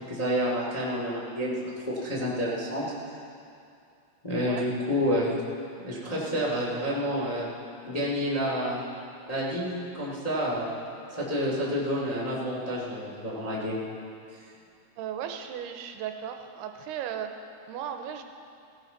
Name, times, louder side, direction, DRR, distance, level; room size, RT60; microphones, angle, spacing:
voice 1, 0.1-2.8 4.2-5.4 5.8-7.5 7.8-8.8 9.3-10.7 11.1-13.8, equal, 15° left, -5 dB, 1.5 m, -29 dB
voice 2, 15.0-17.3 17.7-18.2, right 9 dB, 85° right, 6 dB, 2.7 m, -36 dB
16.5 x 16.5 x 4.0 m, 2.5 s
omnidirectional pair, 4.7 m